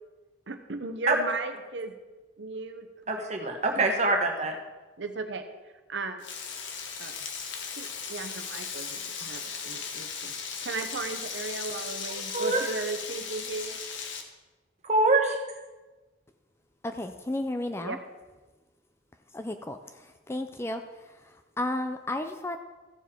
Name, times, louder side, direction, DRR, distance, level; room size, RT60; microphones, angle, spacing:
voice 1, 0.5-1.9 2.4-2.9 3.7-3.9 5.0-5.4 5.9-6.2 7.0-7.1 7.8-10.3 10.6-13.8 17.8-18.0, right 3 dB, 65° right, 7 dB, 0.8 m, -35 dB
voice 2, 3.1-4.5 12.1-12.6 14.8-15.4, right 2 dB, 35° right, 2 dB, 1.3 m, -25 dB
Frying (food), 6.2-14.2, left 6 dB, 70° left, 1.2 m, -37 dB
voice 3, 16.8-18.0 19.3-22.6, left 1 dB, 15° left, 8 dB, 0.4 m, -33 dB
14.5 x 7.2 x 4.4 m, 1.2 s
head